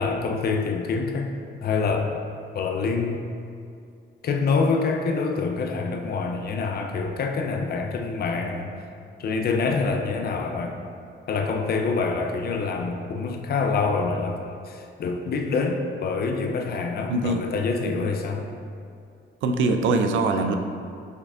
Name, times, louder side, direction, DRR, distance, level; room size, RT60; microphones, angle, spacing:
voice 1, 0.0-1.3 1.6-2.2 2.5-3.2 4.2-8.7 9.2-10.8 11.3-18.5, left 4 dB, 50° left, 4 dB, 0.5 m, -26 dB
voice 2, 17.1-17.5 18.0-18.1 19.4-20.5, right 3 dB, 80° right, 6 dB, 0.4 m, -23 dB
6.4 x 3.3 x 2.4 m, 2.4 s
cardioid pair, 90°, 20 cm